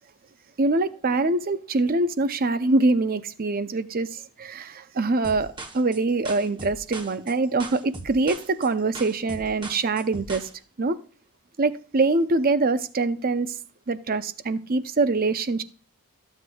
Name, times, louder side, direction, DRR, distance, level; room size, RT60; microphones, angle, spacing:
voice 1, 0.6-10.5 10.8-11.0 11.6-13.5 13.9-15.6, right 3 dB, 40° right, 0.6 m, -24 dB
sound 1, 5.2-10.5, right 2 dB, 20° right, 1.0 m, -39 dB
14.0 x 7.9 x 2.3 m
head